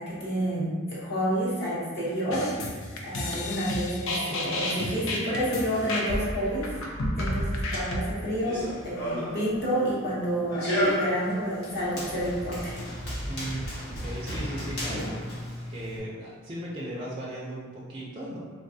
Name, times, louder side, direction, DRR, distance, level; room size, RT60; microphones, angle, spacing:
voice 1, 0.0-6.7 7.2-12.8, equal, 50° left, -7 dB, 0.9 m, -29 dB
sound 1, 2.3-8.0, left 1 dB, 70° left, 0.5 m, -31 dB
Run, 8.3-16.0, equal, 90° left, 1.1 m, -33 dB
voice 2, 13.2-18.4, right 1 dB, 25° right, -6 dB, 0.4 m, -37 dB
3.4 x 2.2 x 2.6 m, 1.5 s
head